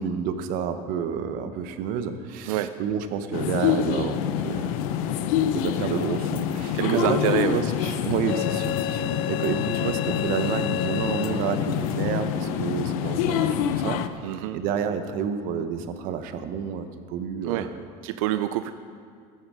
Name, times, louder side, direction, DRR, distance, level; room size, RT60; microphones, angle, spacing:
voice 1, 0.0-4.2 4.4-4.7 5.4-7.2 7.5-7.7 8.0-14.0 14.5-17.8, right 7 dB, 55° right, 9 dB, 1.0 m, -29 dB
sound 1, 3.3-14.1, left 9 dB, 90° left, 0.7 m, -26 dB
voice 2, 6.7-7.9 14.2-14.6 17.4-17.7 18.0-18.7, right 13 dB, 90° right, 11 dB, 0.5 m, -27 dB
15.0 x 9.5 x 4.9 m, 2.2 s
cardioid pair, 145°, 17 cm